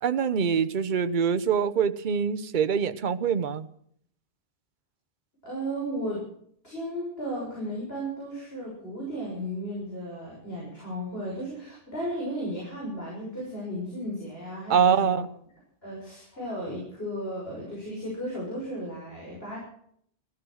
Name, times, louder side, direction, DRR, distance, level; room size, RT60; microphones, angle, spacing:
voice 1, 0.0-3.7 14.7-15.3, right 7 dB, 50° right, 13 dB, 0.9 m, -24 dB
voice 2, 5.4-6.2 6.6-15.2 15.8-19.6, equal, 70° left, -5 dB, 6.9 m, -34 dB
15.5 x 14.5 x 6.3 m, 0.65 s
omnidirectional pair, 1.1 m